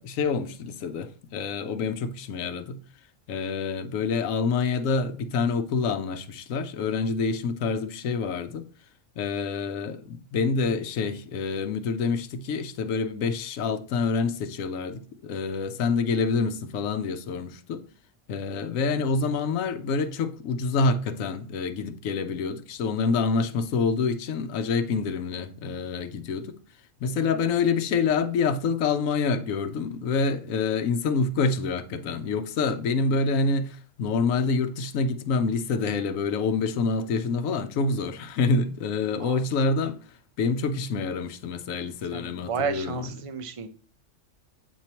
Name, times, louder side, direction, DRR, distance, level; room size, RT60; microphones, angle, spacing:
voice 1, 0.0-2.8 3.3-8.6 9.2-17.8 18.3-26.6 27.0-40.0 40.4-43.3, left 4 dB, 90° left, 1.1 m, -27 dB
voice 2, 42.1-43.7, right 6 dB, 40° right, 0.5 m, -32 dB
8.3 x 4.6 x 2.9 m
omnidirectional pair, 1.3 m